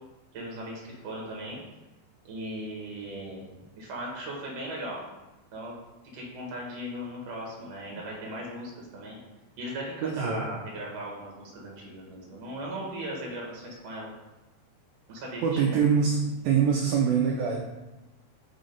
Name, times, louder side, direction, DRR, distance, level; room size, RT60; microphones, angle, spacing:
voice 1, 0.3-1.6 2.2-3.5 3.8-5.0 5.5-5.7 6.1-9.2 9.6-14.1 15.1-15.8, right 1 dB, 55° right, -3 dB, 2.2 m, -38 dB
voice 2, 10.0-10.4 15.4-16.2 16.4-17.6, right 7 dB, 80° right, 0 dB, 2.2 m, -24 dB
5.7 x 3.9 x 5.3 m, 1.1 s
omnidirectional pair, 4.6 m